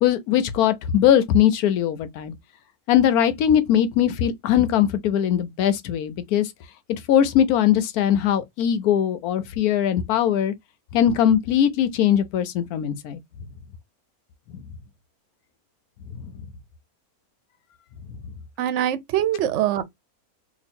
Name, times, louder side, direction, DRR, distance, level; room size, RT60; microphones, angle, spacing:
voice 1, 0.0-2.3 2.9-6.5 7.1-10.5 10.9-13.2 14.5-14.6, left 10 dB, 85° left, 1.1 m, -20 dB
voice 2, 18.6-19.8, right 11 dB, 60° right, 0.8 m, -23 dB
3.0 x 2.4 x 4.2 m
omnidirectional pair, 1.6 m